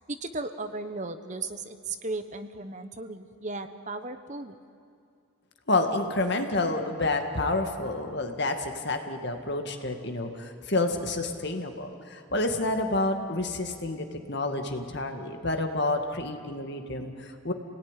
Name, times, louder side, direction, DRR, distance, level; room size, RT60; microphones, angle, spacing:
voice 1, 0.0-4.6, right 3 dB, 35° right, 9 dB, 1.0 m, -36 dB
voice 2, 5.7-17.5, left 2 dB, 50° left, 5 dB, 2.0 m, -29 dB
28.5 x 18.5 x 10.0 m, 2.4 s
head